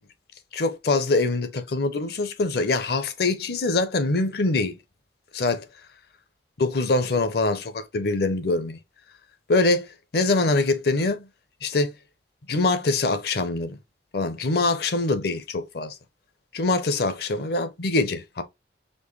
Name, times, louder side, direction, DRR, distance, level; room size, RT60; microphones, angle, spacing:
voice 1, 0.5-4.8 5.3-5.6 6.6-8.8 9.5-9.9 10.1-11.3 11.6-11.9 12.5-13.8 14.1-16.0 16.5-18.4, left 3 dB, 60° left, 0.7 m, -24 dB
4.4 x 2.9 x 3.1 m
head